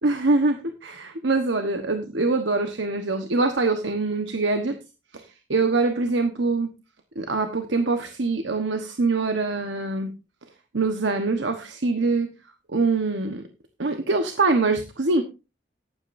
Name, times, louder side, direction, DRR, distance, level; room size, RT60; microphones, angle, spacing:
voice 1, 0.0-4.7 5.1-5.2 5.5-6.7 7.1-10.1 10.7-12.3 12.7-13.4 13.8-15.2, right 3 dB, 85° right, 6 dB, 1.2 m, -24 dB
15.0 x 11.0 x 2.6 m, 0.29 s
head